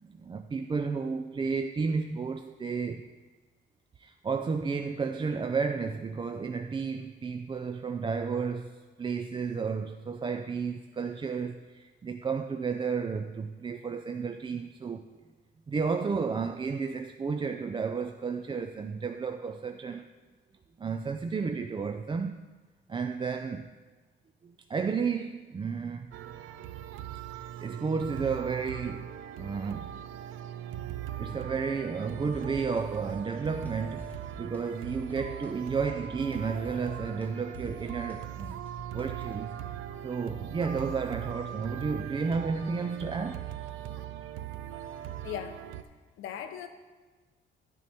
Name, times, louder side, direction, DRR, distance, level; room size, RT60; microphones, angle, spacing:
voice 1, 0.0-3.1 4.0-15.0 15.7-20.1 20.8-22.4 22.9-23.7 24.4-26.1 27.3-29.1 29.4-29.9 31.2-38.6 38.9-39.6 40.0-43.5, right 5 dB, 25° right, 0.4 m, -32 dB
sound 1, 26.1-45.8, right 11 dB, 90° right, 0.5 m, -40 dB
sound 2, 32.3-32.8 33.1-33.7 34.0-34.6 34.9-35.5 35.8-39.4, left 2 dB, 10° left, 0.9 m, -49 dB
voice 2, 45.2-45.7 46.2-46.7, left 9 dB, 90° left, 0.8 m, -38 dB
11.0 x 6.3 x 4.3 m
cardioid pair, 90°, 20 cm